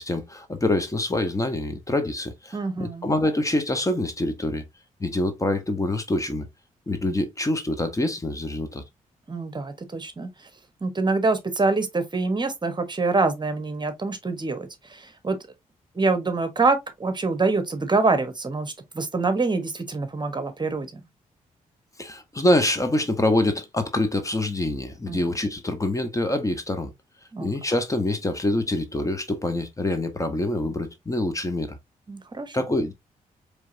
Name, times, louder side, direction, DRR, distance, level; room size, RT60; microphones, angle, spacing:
voice 1, 0.0-4.6 5.0-6.5 6.9-8.8 22.0-26.9 27.4-31.8 32.5-32.9, left 1 dB, 25° left, 1.1 m, -25 dB
voice 2, 2.5-3.1 9.3-10.3 10.8-15.4 15.9-21.0 25.1-25.2 27.3-27.5 32.1-32.6, right 3 dB, 30° right, 1.1 m, -25 dB
4.6 x 3.3 x 2.7 m
cardioid pair, 65°, 14 cm